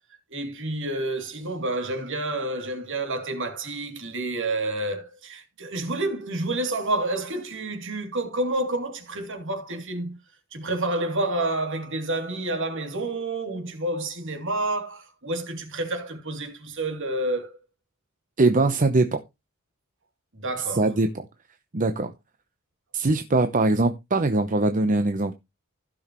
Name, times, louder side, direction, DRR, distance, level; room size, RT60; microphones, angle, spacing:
voice 1, 0.3-10.2 10.5-17.6 20.4-20.9, right 2 dB, 60° right, 2.9 m, -29 dB
voice 2, 18.4-19.2 20.7-21.1 21.7-22.1 22.9-25.3, right 2 dB, 35° right, 0.8 m, -21 dB
15.5 x 6.4 x 3.1 m
head